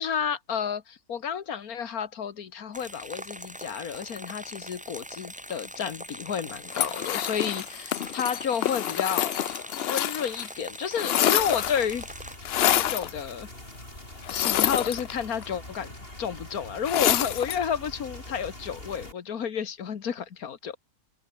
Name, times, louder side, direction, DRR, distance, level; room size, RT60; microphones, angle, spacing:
voice 1, 0.0-9.4 9.9-12.1 12.7-13.5 14.3-15.9 16.2-20.8, left 7 dB, 85° left, 1.9 m, -31 dB
sound 1, 2.7-12.4, equal, 5° right, 4.3 m, -41 dB
sound 2, 6.7-10.5 10.7-11.9 12.4-13.1 14.2-15.4 16.8-17.6, left 11 dB, 60° left, 0.7 m, -27 dB
sound 3, 11.4-19.1, left 1 dB, 40° left, 7.5 m, -44 dB
open air
omnidirectional pair, 1.5 m